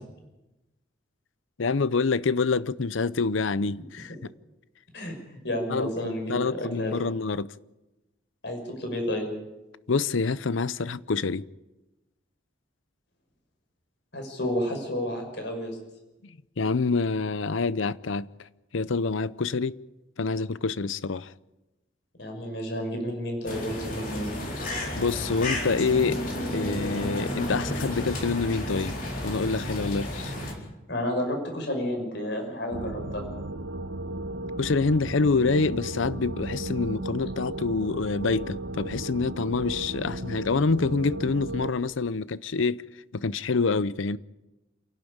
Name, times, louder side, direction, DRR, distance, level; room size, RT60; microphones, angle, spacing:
voice 1, 1.6-4.1 5.7-7.5 9.9-11.5 16.6-18.3 18.7-19.7 20.2-21.3 25.0-26.2 26.5-29.0 29.2-30.3 34.6-42.8 43.1-44.2, left 4 dB, 80° left, 0.6 m, -26 dB
voice 2, 4.9-6.9 8.4-9.3 14.1-15.8 22.2-24.3 30.9-33.2, equal, 60° left, 6.0 m, -31 dB
sound 1, 23.4-30.5, left 1 dB, 45° left, 4.4 m, -32 dB
sound 2, 32.7-41.7, right 1 dB, 70° right, 1.1 m, -35 dB
28.5 x 11.5 x 8.8 m
head